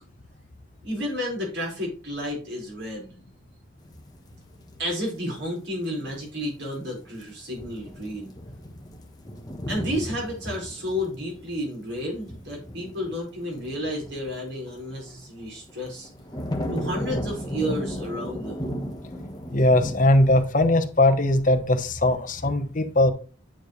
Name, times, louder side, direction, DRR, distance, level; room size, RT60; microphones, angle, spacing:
voice 1, 0.8-3.1 4.8-8.3 9.7-16.1 16.7-18.6, equal, 60° right, -1 dB, 4.9 m, -31 dB
sound 1, 3.8-5.3 5.7-6.3 6.6-6.8 7.1-7.2 7.6-15.2 15.7-20.4, equal, 20° left, 1.1 m, -35 dB
voice 2, 19.5-23.1, left 1 dB, 40° left, 7 dB, 1.0 m, -20 dB
9.5 x 6.6 x 3.2 m, 0.37 s
head